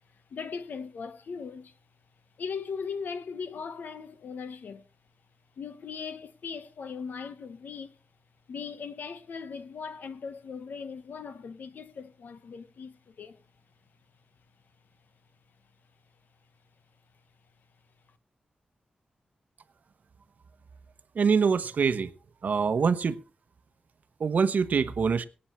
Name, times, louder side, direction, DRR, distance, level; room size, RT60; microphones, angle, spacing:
voice 1, 0.3-1.7 2.4-4.8 5.6-8.0 8.5-13.4, left 5 dB, 85° left, 1.2 m, -39 dB
voice 2, 21.1-22.1 22.4-23.2 24.2-25.3, right 5 dB, 60° right, 1.0 m, -24 dB
24.5 x 8.8 x 3.2 m
wide cardioid pair, 155°, 3 cm